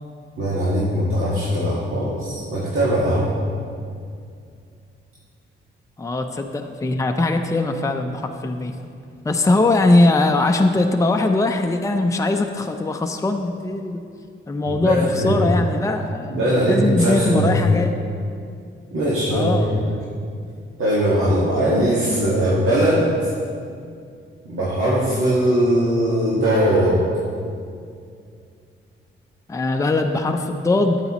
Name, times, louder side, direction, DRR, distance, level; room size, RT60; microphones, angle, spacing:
voice 1, 0.4-3.3 14.6-15.4 16.3-17.5 18.9-20.0 20.8-23.3 24.4-27.0, right 1 dB, 80° right, -9 dB, 1.7 m, -20 dB
voice 2, 6.0-8.7 9.2-14.0 14.5-16.3 16.7-18.0 19.3-19.7 29.5-31.0, left 2 dB, 15° left, 4 dB, 0.5 m, -20 dB
9.2 x 8.2 x 3.0 m, 2.3 s
cardioid pair, 60°, 21 cm